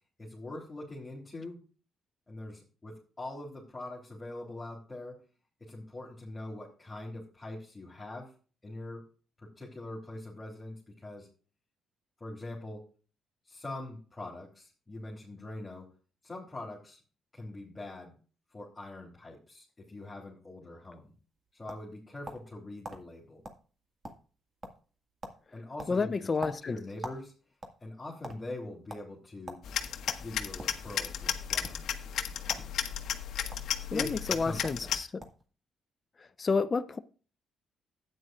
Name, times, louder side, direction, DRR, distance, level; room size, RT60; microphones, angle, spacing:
voice 1, 0.2-1.6 2.3-5.2 5.6-8.3 8.6-9.1 9.4-11.3 12.2-12.9 13.5-15.9 16.2-17.0 17.3-18.1 18.5-21.1 21.5-23.4 25.5-26.1 26.4-27.3 27.8-29.6 30.2-31.9 33.9-34.9, left 2 dB, 20° left, 3.2 m, -43 dB
sound 1, 21.1-22.5 22.8-23.0 23.4-23.6 23.9-24.4 24.6-24.9 25.2-25.4 25.8-27.2 27.5-28.4 28.9-29.0 29.5-29.6 30.1-30.8 31.5-31.7 32.4-32.7 33.0-33.6 34.3-34.4 34.6-34.8 35.2-35.5, right 1 dB, 30° right, 1.9 m, -43 dB
voice 2, 25.9-26.8 33.7-35.2 36.2-37.0, left 4 dB, 35° left, 0.6 m, -30 dB
sound 2, 29.6-35.0, left 9 dB, 70° left, 1.0 m, -34 dB
12.5 x 9.1 x 2.5 m
cardioid pair, 90°, 0 cm